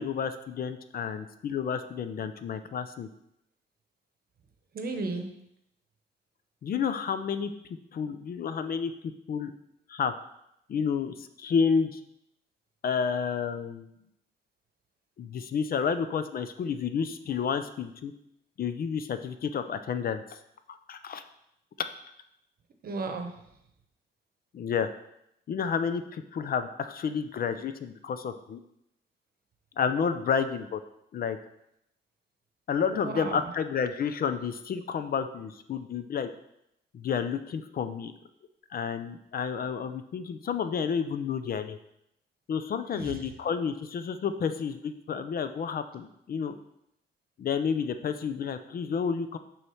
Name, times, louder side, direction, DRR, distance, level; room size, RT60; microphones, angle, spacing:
voice 1, 0.0-3.1 6.6-7.5 7.9-8.9 9.3-9.5 9.9-10.1 10.7-12.0 12.8-13.9 15.2-18.1 18.6-20.2 20.9-21.2 24.5-24.9 25.5-28.6 29.8-30.8 31.1-31.4 32.7-36.3 36.9-38.1 38.7-41.8 42.5-46.6 47.4-49.4, left 6 dB, 50° left, 10 dB, 0.5 m, -30 dB
voice 2, 4.7-5.3 22.8-23.3 32.9-33.5 42.9-43.3, right 3 dB, 50° right, 5 dB, 0.9 m, -34 dB
6.4 x 3.1 x 5.6 m, 0.79 s
cardioid pair, 90°, 20 cm